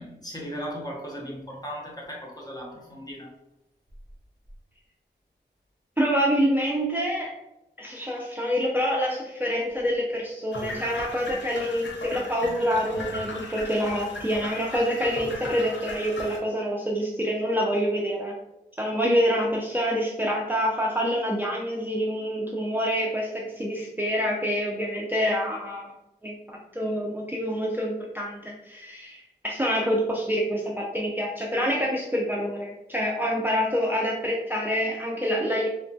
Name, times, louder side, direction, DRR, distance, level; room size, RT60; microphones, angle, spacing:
voice 1, 0.0-3.4, equal, 20° left, -2 dB, 0.7 m, -37 dB
voice 2, 6.0-7.3 7.8-18.3 18.8-25.9 26.2-35.7, equal, 10° right, -3 dB, 0.3 m, -26 dB
sound 1, 10.5-16.4, left 2 dB, 80° left, 0.6 m, -37 dB
3.1 x 2.2 x 2.6 m, 0.93 s
wide cardioid pair, 70°, 19 cm